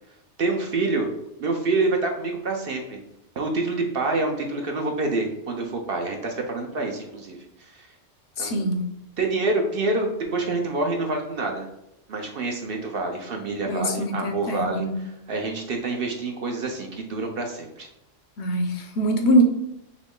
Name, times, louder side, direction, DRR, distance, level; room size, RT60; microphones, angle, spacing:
voice 1, 0.4-1.1 1.4-3.0 3.4-7.9 8.4-8.7 9.2-11.7 12.1-14.8 15.3-17.9, right 3 dB, 55° right, 2 dB, 0.8 m, -27 dB
voice 2, 8.4-8.9 13.7-15.0 18.4-19.4, equal, 65° left, 4 dB, 0.9 m, -23 dB
6.0 x 2.1 x 3.6 m, 0.83 s
omnidirectional pair, 1.3 m